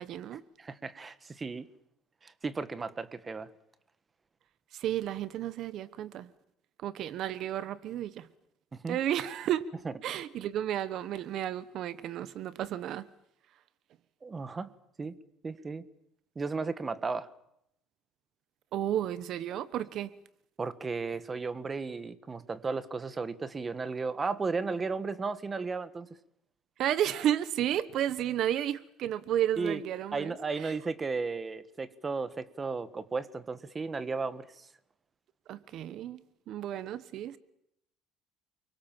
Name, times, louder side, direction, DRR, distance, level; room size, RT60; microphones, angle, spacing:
voice 1, 0.0-0.4 4.7-6.3 6.8-8.3 8.9-9.6 10.0-13.1 18.7-20.1 26.8-30.3 30.6-30.7 35.5-37.4, right 11 dB, 50° right, 1.2 m, -32 dB
voice 2, 0.6-1.6 2.2-3.5 8.7-9.0 9.8-9.9 14.2-14.7 15.0-15.2 15.4-15.8 16.3-17.3 20.6-26.1 29.6-29.8 30.1-34.7, right 4 dB, 20° right, 1.4 m, -34 dB
29.0 x 23.5 x 7.4 m
cardioid pair, 150°, 0 cm